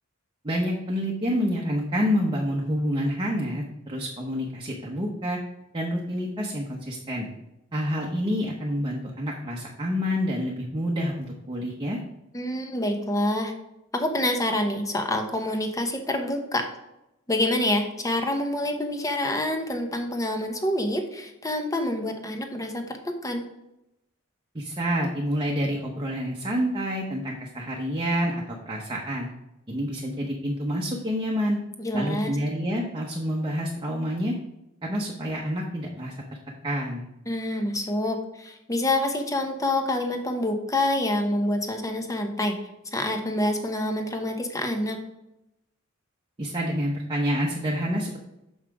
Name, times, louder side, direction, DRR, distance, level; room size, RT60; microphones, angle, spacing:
voice 1, 0.4-5.4 5.7-7.3 7.7-12.0 24.5-29.3 29.7-31.6 31.9-34.3 34.8-36.1 36.6-37.0 46.4-48.2, equal, 25° right, -2 dB, 0.9 m, -28 dB
voice 2, 12.3-13.5 13.9-16.7 17.3-23.4 31.8-32.3 37.3-42.6 42.9-45.0, left 1 dB, 15° left, 5 dB, 0.9 m, -27 dB
6.3 x 5.7 x 4.7 m, 0.89 s
head